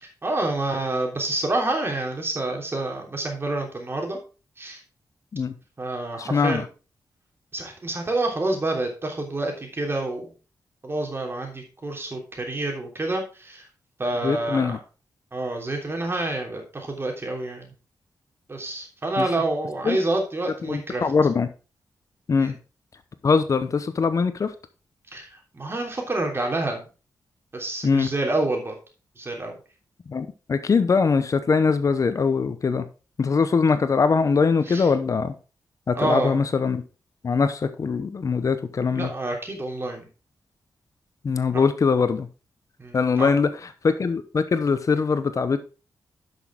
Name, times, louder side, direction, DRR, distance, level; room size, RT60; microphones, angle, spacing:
voice 1, 0.0-4.2 4.6-4.8 5.8-6.6 7.5-10.3 10.8-13.6 14.0-14.8 15.3-17.7 18.5-21.0 22.4-22.5 25.1-26.9 27.5-28.7 29.2-29.6 34.7-34.9 35.9-36.4 39.0-40.1 41.5-41.6 42.8-43.3, right 2 dB, 35° right, 2 dB, 3.1 m, -28 dB
voice 2, 6.2-6.7 14.2-14.8 19.2-19.3 19.8-20.0 20.6-21.5 22.3-22.6 23.2-24.5 27.8-28.1 30.1-32.9 33.2-35.3 35.9-36.8 37.2-39.1 41.2-42.3 42.9-45.6, left 5 dB, 50° left, 11 dB, 0.8 m, -22 dB
11.0 x 6.2 x 3.7 m, 0.33 s
cardioid pair, 80°, 7 cm